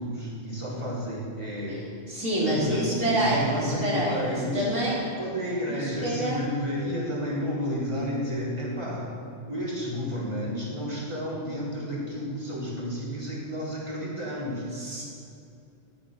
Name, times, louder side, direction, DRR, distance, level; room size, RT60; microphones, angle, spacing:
voice 1, 0.0-1.9 2.4-9.1 9.5-14.6, equal, 25° right, -6 dB, 4.1 m, -31 dB
voice 2, 2.1-4.9 5.7-6.4 14.7-15.0, right 1 dB, 75° right, -6 dB, 4.6 m, -27 dB
14.0 x 10.5 x 6.7 m, 2.6 s
omnidirectional pair, 1.3 m